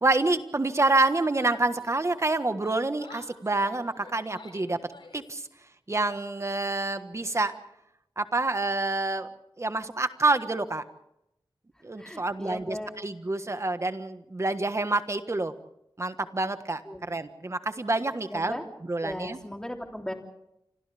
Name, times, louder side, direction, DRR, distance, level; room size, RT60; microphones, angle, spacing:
voice 1, 0.0-4.8 5.1-5.5 5.9-7.5 8.2-9.3 9.6-10.9 11.8-15.5 16.0-18.6 18.9-19.4, right 2 dB, 35° right, 9 dB, 1.4 m, -27 dB
Yell, 0.6-2.3 2.6-5.4, left 3 dB, 80° left, 3.9 m, -51 dB
voice 2, 11.7-12.9 16.8-17.0 18.3-18.6 19.0-20.1, left 1 dB, 10° left, 2 dB, 3.4 m, -37 dB
29.0 x 26.5 x 3.5 m, 0.81 s
wide cardioid pair, 90°, 9 cm